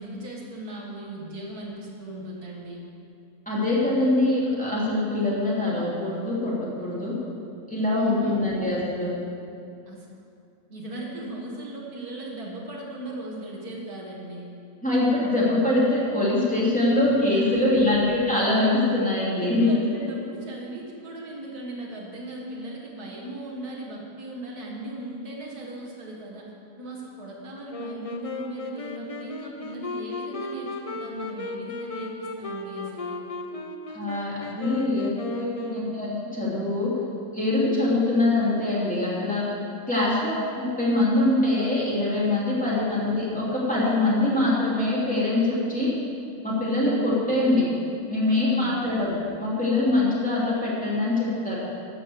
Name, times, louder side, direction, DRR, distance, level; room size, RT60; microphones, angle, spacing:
voice 1, 0.0-2.8 7.9-8.4 9.9-10.1 10.7-14.5 17.3-18.1 19.3-33.2 42.5-42.8 48.5-48.8, right 1 dB, 80° right, -3 dB, 2.3 m, -37 dB
voice 2, 3.5-7.1 7.7-9.1 14.8-19.7 33.9-36.9 37.3-39.5 39.9-45.9 46.4-47.7 48.1-51.6, left 2 dB, 5° left, -8 dB, 3.0 m, -23 dB
Wind instrument woodwind instrument, 27.7-36.4, left 2 dB, 35° left, 0.5 m, -35 dB
12.5 x 6.5 x 7.8 m, 2.6 s
omnidirectional pair, 1.6 m